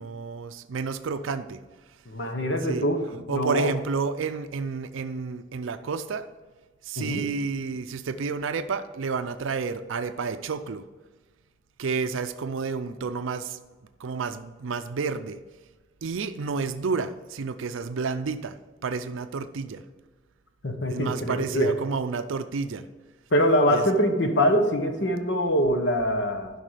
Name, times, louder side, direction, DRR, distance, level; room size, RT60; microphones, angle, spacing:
voice 1, 0.0-1.6 2.6-2.9 3.3-6.3 6.8-10.8 11.8-13.6 14.0-15.4 16.0-18.6 18.8-19.8 20.9-22.9 23.7-23.8, right 4 dB, 75° right, 10 dB, 0.5 m, -30 dB
voice 2, 2.1-3.7 7.0-7.2 20.6-21.7 23.3-26.5, equal, 60° left, 5 dB, 1.1 m, -24 dB
11.5 x 5.4 x 5.0 m, 1.3 s
head